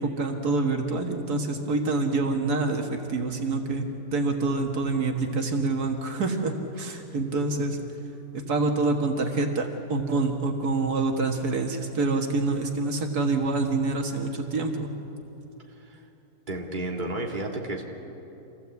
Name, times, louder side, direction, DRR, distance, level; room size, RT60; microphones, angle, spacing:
voice 1, 0.0-7.8 8.3-14.9, right 3 dB, 80° right, 3 dB, 2.0 m, -26 dB
voice 2, 16.5-17.8, right 2 dB, 30° right, 0 dB, 2.4 m, -32 dB
26.5 x 16.0 x 8.3 m, 2.9 s
omnidirectional pair, 1.6 m